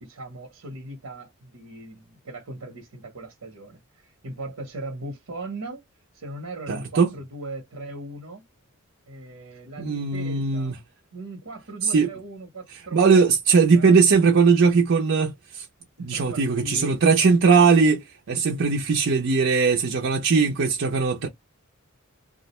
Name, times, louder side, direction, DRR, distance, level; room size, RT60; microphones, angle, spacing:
voice 1, 0.0-5.8 6.1-8.4 9.1-10.8 11.1-14.0 16.0-17.3, right 2 dB, 85° right, 0.8 m, -39 dB
voice 2, 6.7-7.1 9.8-10.7 11.9-12.1 12.9-15.7 16.0-21.3, right 5 dB, 60° right, 0.5 m, -19 dB
2.4 x 2.0 x 2.9 m
head